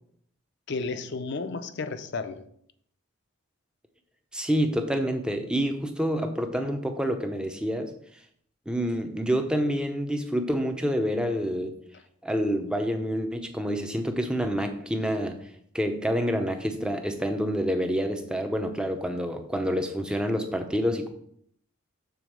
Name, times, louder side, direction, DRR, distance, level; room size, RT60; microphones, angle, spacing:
voice 1, 0.7-2.4, left 4 dB, 55° left, 11 dB, 0.6 m, -32 dB
voice 2, 4.3-7.9 8.7-11.7 12.2-15.4 15.7-21.1, equal, 5° right, 5 dB, 0.6 m, -27 dB
7.0 x 4.0 x 6.1 m, 0.67 s
head